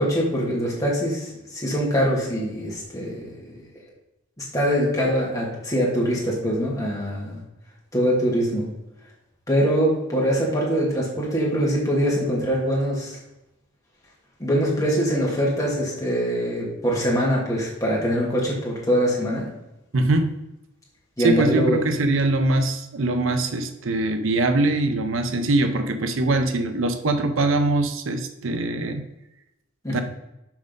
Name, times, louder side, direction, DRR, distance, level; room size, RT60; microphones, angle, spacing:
voice 1, 0.0-3.4 4.5-7.4 7.9-8.7 9.5-13.2 14.4-19.5 21.2-21.8 29.8-30.0, equal, 15° left, -4 dB, 2.1 m, -23 dB
voice 2, 19.9-20.4 21.2-29.0 29.9-30.0, right 2 dB, 70° right, 8 dB, 0.7 m, -22 dB
6.0 x 5.2 x 5.2 m, 0.91 s
head